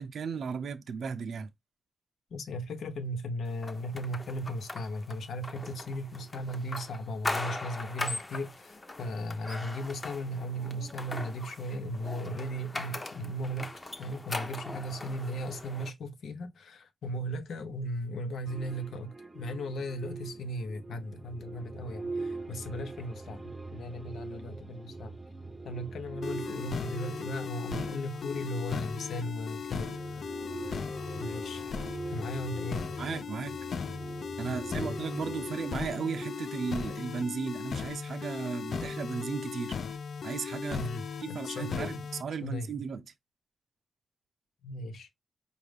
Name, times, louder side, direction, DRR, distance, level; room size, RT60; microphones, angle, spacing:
voice 1, 0.0-1.5 33.0-33.6 34.4-39.7 40.2-40.9 41.2-43.0, right 5 dB, 65° right, 0.5 m, -35 dB
voice 2, 2.3-25.2 25.6-30.3 31.2-31.6 32.1-32.8 34.4-35.1 40.7-42.0 42.4-42.7 44.6-45.1, equal, 85° left, 0.8 m, -37 dB
sound 1, 3.6-15.9, left 2 dB, 25° left, 0.7 m, -40 dB
sound 2, 18.5-37.4, right 3 dB, 20° right, 0.5 m, -43 dB
sound 3, 26.2-42.2, left 6 dB, 60° left, 0.4 m, -37 dB
5.1 x 2.4 x 3.3 m
wide cardioid pair, 125°, 0 cm